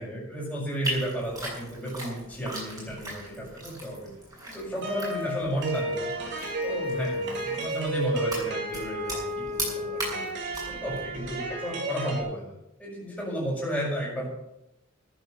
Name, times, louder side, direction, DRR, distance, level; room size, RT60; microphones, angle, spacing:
voice 1, 0.0-4.1 4.5-6.1 6.6-10.2 10.7-12.5 12.8-14.3, equal, 5° left, -9 dB, 6.1 m, -33 dB
sound 1, 0.8-11.6, right 1 dB, 20° right, 7.0 m, -39 dB
sound 2, 4.8-12.2, right 1 dB, 65° right, 3.6 m, -32 dB
14.0 x 10.0 x 6.8 m, 0.85 s
head